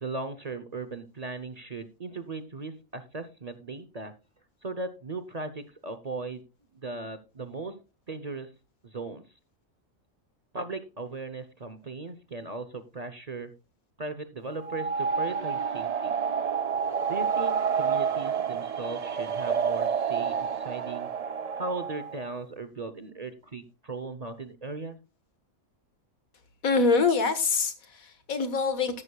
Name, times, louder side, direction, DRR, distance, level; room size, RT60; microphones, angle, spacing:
voice 1, 0.0-4.1 4.6-6.4 6.7-7.7 8.1-8.5 8.8-9.2 10.5-13.5 14.0-16.2 17.1-21.1 21.5-25.0, right 3 dB, 35° right, 11 dB, 0.7 m, -37 dB
sound 1, 14.6-22.2, right 6 dB, 60° right, 0.4 m, -29 dB
voice 2, 26.6-29.0, left 4 dB, 90° left, 10 dB, 1.9 m, -25 dB
13.5 x 11.5 x 2.3 m, 0.30 s
omnidirectional pair, 1.4 m